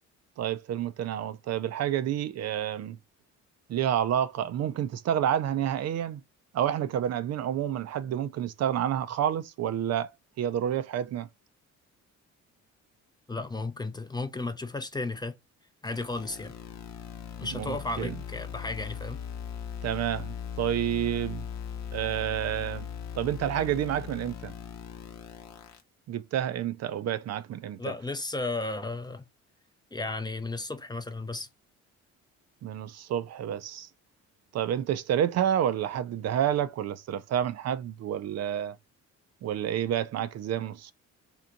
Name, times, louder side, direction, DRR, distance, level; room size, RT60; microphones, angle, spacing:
voice 1, 0.4-3.0 3.7-6.2 6.5-11.3 17.5-18.2 19.8-21.4 21.9-22.9 23.1-24.5 26.1-27.9 32.6-33.9 34.5-38.8 39.4-40.9, right 10 dB, 60° right, 0.4 m, -29 dB
voice 2, 13.3-15.4 15.8-16.5 17.4-19.2 27.8-29.2 29.9-31.5, left 2 dB, 15° left, 0.5 m, -34 dB
sound 1, 15.9-25.8, left 8 dB, 65° left, 0.8 m, -39 dB
3.4 x 2.9 x 2.5 m
cardioid pair, 90°, 30 cm